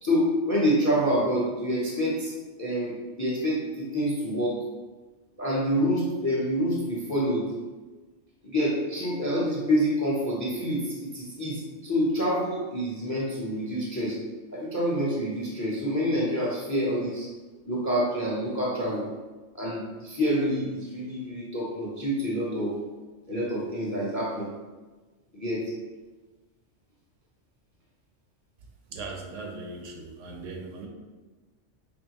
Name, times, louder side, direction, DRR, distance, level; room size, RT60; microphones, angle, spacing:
voice 1, 0.0-2.3 2.6-4.6 5.4-7.5 8.4-14.2 14.5-17.3 17.7-19.1 19.5-22.8 23.3-24.5 25.3-25.6, equal, 20° left, -5 dB, 0.5 m, -27 dB
voice 2, 28.9-30.9, right 3 dB, 80° right, 1 dB, 1.0 m, -39 dB
4.4 x 2.8 x 2.9 m, 1.3 s
omnidirectional pair, 1.3 m